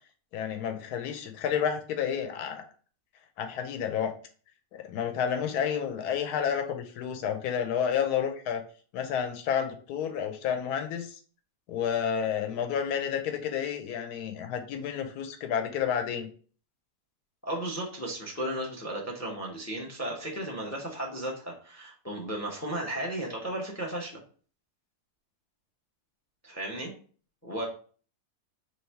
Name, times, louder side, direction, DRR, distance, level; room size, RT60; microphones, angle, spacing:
voice 1, 0.3-2.7 3.4-4.1 4.7-8.6 8.9-11.2 11.7-16.3, left 8 dB, 80° left, 6 dB, 1.1 m, -30 dB
voice 2, 17.4-24.2 26.4-26.9 27.4-27.6, right 1 dB, 20° left, 0 dB, 0.4 m, -34 dB
3.1 x 2.9 x 4.4 m, 0.42 s
omnidirectional pair, 1.7 m